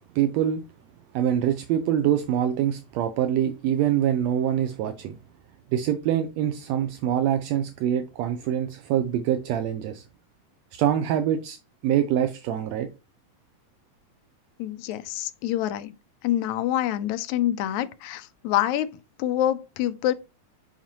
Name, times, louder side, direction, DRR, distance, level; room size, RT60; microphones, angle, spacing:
voice 1, 0.2-0.6 1.1-5.2 5.7-10.0 10.7-11.6 11.8-12.9, right 10 dB, 80° right, 1.7 m, -24 dB
voice 2, 14.6-15.9 16.2-18.9 19.2-20.1, left 12 dB, 80° left, 1.9 m, -26 dB
7.1 x 5.7 x 2.9 m
omnidirectional pair, 3.3 m